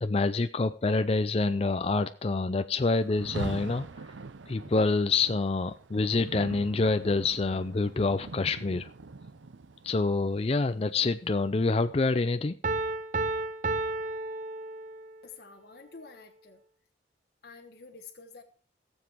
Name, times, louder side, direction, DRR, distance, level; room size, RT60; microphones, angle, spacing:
voice 1, 0.0-3.9 4.5-8.9 9.8-12.6, left 3 dB, 30° left, 10 dB, 0.4 m, -27 dB
Rain, 3.0-12.1, right 3 dB, 85° right, 0.7 m, -43 dB
Piano, 12.6-15.2, right 2 dB, 45° right, 0.5 m, -32 dB
voice 2, 15.2-16.6 17.4-18.4, left 4 dB, 55° left, 2 dB, 1.2 m, -49 dB
18.0 x 7.2 x 4.5 m, 0.43 s
head